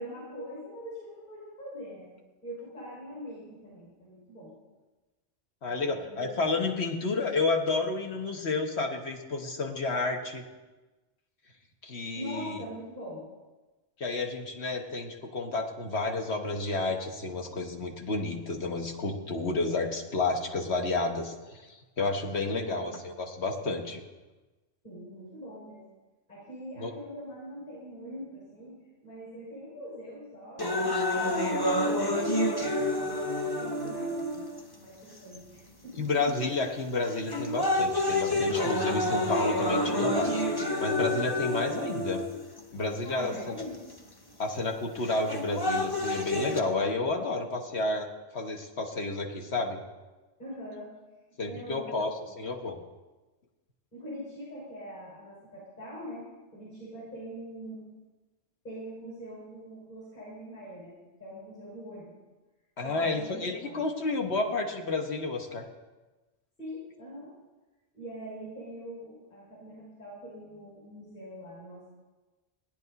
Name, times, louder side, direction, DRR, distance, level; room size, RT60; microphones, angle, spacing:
voice 1, 0.0-2.1 2.4-4.5 5.7-6.3 11.9-13.3 22.5-23.0 24.8-25.8 26.3-28.8 29.0-32.4 32.7-36.1 43.0-43.9 50.4-50.9 51.4-52.3 53.9-56.3 56.5-57.8 58.6-62.1 62.8-63.9 66.6-67.3 67.9-71.9, equal, 40° left, -7 dB, 5.7 m, -43 dB
voice 2, 5.6-10.4 11.8-12.6 14.0-24.0 26.8-26.9 35.9-40.4 40.8-42.2 42.7-43.6 44.4-48.1 48.3-49.8 51.4-52.1 52.4-52.8 62.8-65.6, left 3 dB, 65° left, 2 dB, 1.6 m, -31 dB
sound 1, 30.6-34.6 35.3-35.4 36.3-36.6 37.1-42.6 43.6-43.7 45.1-46.6, left 1 dB, 20° left, 0.9 m, -28 dB
17.0 x 10.5 x 4.1 m, 1.2 s
omnidirectional pair, 1.2 m